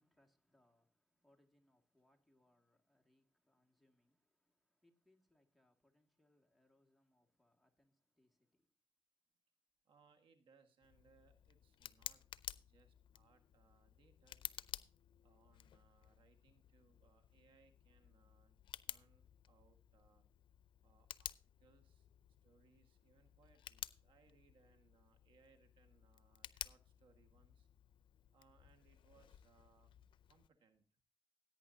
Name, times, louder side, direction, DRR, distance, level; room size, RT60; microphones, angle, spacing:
voice 1, 0.0-8.7, left 1 dB, ahead, 2.2 m, -77 dB
voice 2, 9.8-12.2 12.6-14.5 15.2-20.2 20.8-22.1 22.4-27.7 28.3-29.9 30.3-31.0, right 5 dB, 90° right, 1.7 m, -72 dB
Tick, 10.8-30.5, left 10 dB, 85° left, 0.5 m, -54 dB
16.5 x 9.0 x 2.8 m
cardioid pair, 75°, 8 cm